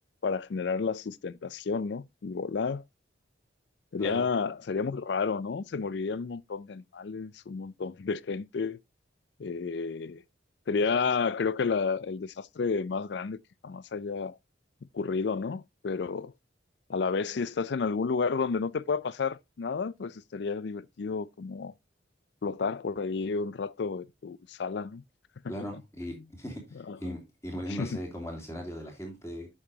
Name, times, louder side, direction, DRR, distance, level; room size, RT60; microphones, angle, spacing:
voice 1, 0.2-2.8 3.9-8.8 9.4-10.2 10.7-13.4 13.6-14.3 14.9-16.3 16.9-21.7 22.4-25.0 25.4-25.5 26.7-27.1 27.7-28.0, left 5 dB, 65° left, 0.4 m, -31 dB
voice 2, 25.5-29.5, equal, 15° left, 2.8 m, -38 dB
8.8 x 6.8 x 2.8 m
head